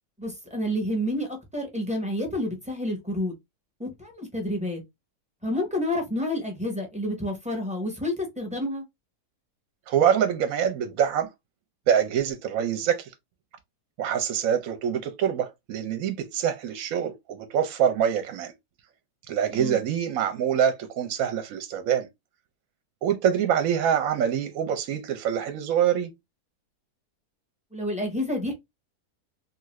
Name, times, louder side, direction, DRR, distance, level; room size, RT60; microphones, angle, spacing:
voice 1, 0.2-3.3 3.8-4.8 5.4-8.8 19.5-19.8 27.7-28.5, left 1 dB, 5° right, 0.6 m, -29 dB
voice 2, 9.9-11.3 11.9-13.1 14.0-18.5 19.3-22.1 23.0-26.1, right 8 dB, 70° right, 0.9 m, -25 dB
2.8 x 2.5 x 3.0 m
omnidirectional pair, 1.7 m